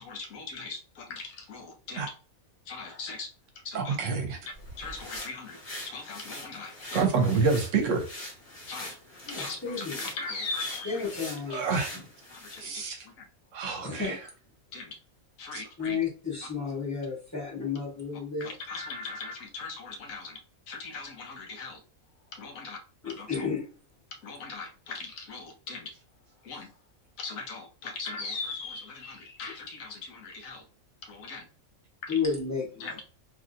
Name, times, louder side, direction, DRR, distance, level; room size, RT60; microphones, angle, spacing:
voice 1, 0.0-2.1 2.7-4.0 4.5-7.1 8.7-9.0 9.3-11.7 12.3-13.2 14.7-15.0 15.4-16.0 16.4-16.5 18.4-20.4 20.7-21.8 22.3-22.8 23.0-23.5 24.1-25.9 26.4-26.7 27.2-30.6 31.0-31.5 32.0-32.2 32.8-33.0, left 4 dB, 75° left, 1.1 m, -40 dB
voice 2, 3.7-4.4 6.9-8.1 11.5-11.9 12.6-13.0 13.5-14.2, right 4 dB, 70° right, 0.9 m, -27 dB
sound 1, 4.4-12.7, left 1 dB, 45° left, 1.3 m, -43 dB
voice 3, 9.3-10.0 10.9-11.6 13.8-14.1 15.8-18.5 23.0-23.6 32.1-32.9, left 5 dB, 15° left, 0.9 m, -32 dB
3.1 x 2.6 x 2.5 m
omnidirectional pair, 1.5 m